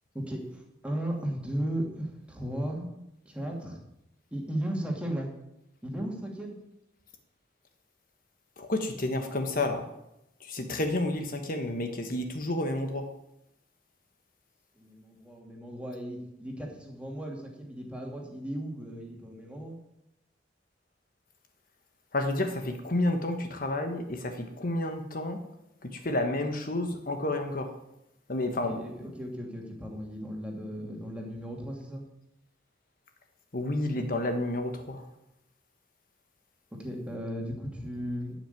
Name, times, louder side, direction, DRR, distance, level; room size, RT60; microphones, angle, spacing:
voice 1, 0.1-2.9 3.2-3.8 4.3-5.3 5.8-6.5 14.8-19.8 28.7-32.0 36.7-38.4, right 1 dB, 5° right, 0 dB, 2.6 m, -36 dB
voice 2, 8.6-9.9 10.4-13.1 22.1-25.4 25.8-27.7 28.3-29.1 33.5-35.0, left 1 dB, 50° left, 5 dB, 1.3 m, -30 dB
12.0 x 6.3 x 9.2 m, 0.86 s
head